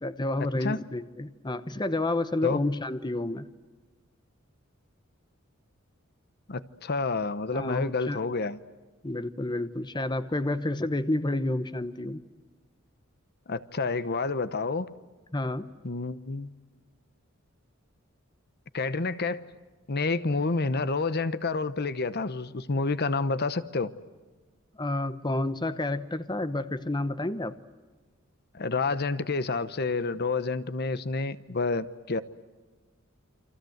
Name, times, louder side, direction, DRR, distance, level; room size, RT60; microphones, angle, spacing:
voice 1, 0.0-3.5 7.5-8.2 9.0-12.2 15.3-15.7 24.8-27.5, left 2 dB, 20° left, 12 dB, 0.9 m, -30 dB
voice 2, 6.5-8.6 13.5-14.9 15.8-16.5 18.7-19.4 19.9-23.9 28.5-32.2, left 3 dB, 50° left, 14 dB, 1.0 m, -29 dB
29.5 x 25.0 x 8.0 m, 1.3 s
head